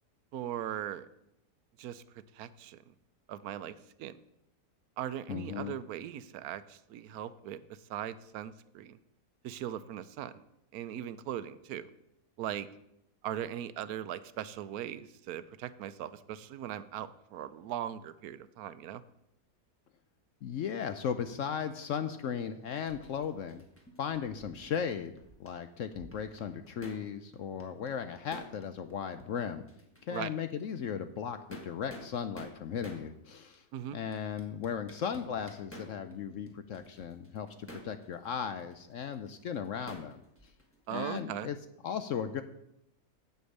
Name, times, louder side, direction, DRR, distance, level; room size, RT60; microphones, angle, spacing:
voice 1, 0.3-1.1 1.8-2.0 2.3-2.8 3.3-4.1 5.0-7.6 7.9-9.0 9.4-10.4 10.7-11.9 12.4-12.7 13.2-19.0 30.1-30.3 33.7-34.0 40.9-41.5, right 11 dB, 70° right, 14 dB, 1.0 m, -39 dB
voice 2, 5.3-5.7 20.4-23.6 24.0-25.1 25.4-29.6 30.0-33.6 33.9-40.2 40.9-41.6 41.8-42.4, left 7 dB, 65° left, 10 dB, 0.8 m, -36 dB
sound 1, 22.7-25.5 25.8-27.1 27.3-28.9 29.2-29.3 29.7-30.2 30.6-30.7 31.3-33.1 33.5-33.6 34.1-36.2 36.5-40.8, equal, 10° left, 1.4 m, -51 dB
8.1 x 7.9 x 6.5 m, 0.81 s
omnidirectional pair, 1.7 m